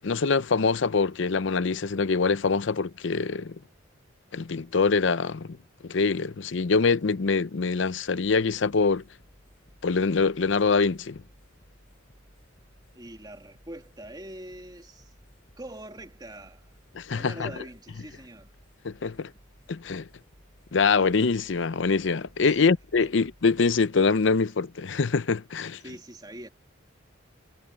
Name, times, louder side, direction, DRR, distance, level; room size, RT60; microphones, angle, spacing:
voice 1, 0.0-3.6 4.3-5.6 5.8-9.0 9.8-11.2 17.0-17.5 18.8-19.3 19.7-20.1 20.7-25.8, left 4 dB, 65° left, 0.6 m, -24 dB
sound 1, 8.2-25.3, equal, 40° left, 7.9 m, -59 dB
voice 2, 12.9-15.1 15.6-16.8 17.1-18.5 22.4-22.7 23.0-23.1 25.8-26.5, right 1 dB, 20° right, 2.9 m, -43 dB
head